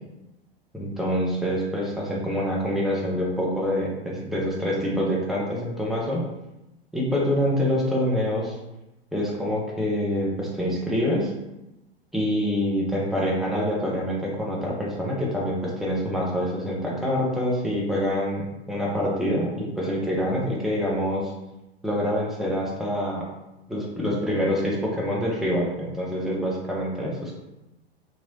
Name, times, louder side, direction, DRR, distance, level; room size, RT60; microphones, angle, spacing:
voice 1, 0.7-6.2 6.9-8.6 9.1-11.3 12.1-21.3 21.8-23.2 23.7-27.3, equal, ahead, -4 dB, 0.7 m, -26 dB
3.0 x 2.9 x 2.6 m, 0.94 s
hypercardioid pair, 100°, 31 cm